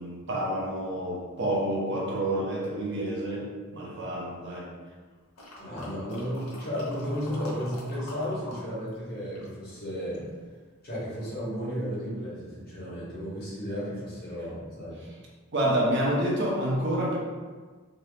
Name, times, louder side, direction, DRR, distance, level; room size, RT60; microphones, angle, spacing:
voice 1, 0.0-3.5 3.7-4.7 15.5-17.2, right 1 dB, 60° right, -3 dB, 0.7 m, -28 dB
sound 1, 5.4-8.6 8.9-10.3 10.9-11.0, left 1 dB, 90° left, 0.9 m, -45 dB
voice 2, 5.6-10.3 10.8-15.0, equal, 45° left, -9 dB, 1.4 m, -33 dB
3.0 x 2.6 x 3.1 m, 1.4 s
head